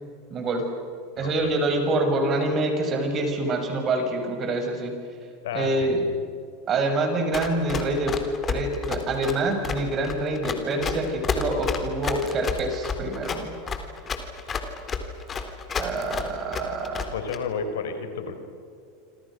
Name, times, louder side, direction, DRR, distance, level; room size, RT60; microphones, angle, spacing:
voice 1, 0.3-0.6 1.2-5.0 5.5-6.0 6.7-8.2 8.5-13.6 15.7-17.0, right 2 dB, 35° right, 5 dB, 6.7 m, -26 dB
voice 2, 1.2-1.5 5.4-6.2 17.1-18.4, left 6 dB, 80° left, 8 dB, 3.9 m, -32 dB
Run, 7.3-17.4, left 5 dB, 30° left, 3.7 m, -30 dB
27.5 x 26.5 x 6.5 m, 2.5 s
hypercardioid pair, 100°, 0 cm